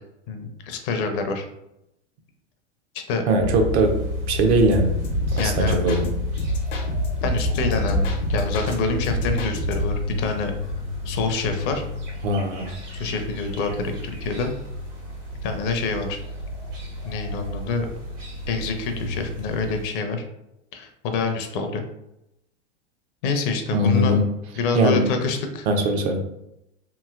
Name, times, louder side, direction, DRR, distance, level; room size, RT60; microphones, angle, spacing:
voice 1, 0.3-1.5 3.1-3.2 5.4-5.8 7.2-10.5 11.0-11.8 12.9-14.5 15.4-16.2 17.0-17.9 18.5-20.2 20.7-21.8 23.2-24.2 24.6-25.7, left 4 dB, 45° left, 5 dB, 0.5 m, -26 dB
voice 2, 3.3-4.0 4.3-5.0 5.4-6.1 12.2-12.7 23.7-24.3 24.7-25.1 25.7-26.2, right 1 dB, 60° right, 4 dB, 0.7 m, -20 dB
sound 1, 3.4-14.1, left 3 dB, 10° right, 0.3 m, -30 dB
sound 2, 3.5-19.8, right 1 dB, 90° right, 1.5 m, -36 dB
sound 3, 4.7-6.1 6.4-8.7 9.0-10.0, equal, 85° left, 0.8 m, -27 dB
3.0 x 2.6 x 2.4 m, 0.86 s
hypercardioid pair, 110°, 36 cm